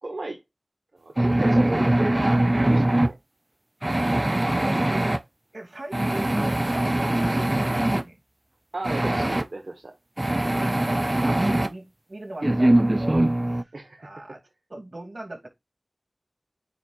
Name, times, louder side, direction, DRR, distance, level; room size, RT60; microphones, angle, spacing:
voice 1, 0.0-0.4 0.9-3.1 8.7-10.0 13.7-14.4, right 2 dB, 80° right, 1.4 m, -36 dB
sound 1, 1.2-3.1 3.8-5.2 5.9-8.0 8.8-9.4 10.2-11.7 12.4-13.6, right 1 dB, 30° right, 0.3 m, -22 dB
voice 2, 4.6-5.2 5.5-8.2 9.1-9.3 10.5-13.7 14.0-14.4 14.7-15.5, right 2 dB, 50° right, 2.7 m, -39 dB
9.2 x 4.4 x 2.5 m
wide cardioid pair, 55°, 0 cm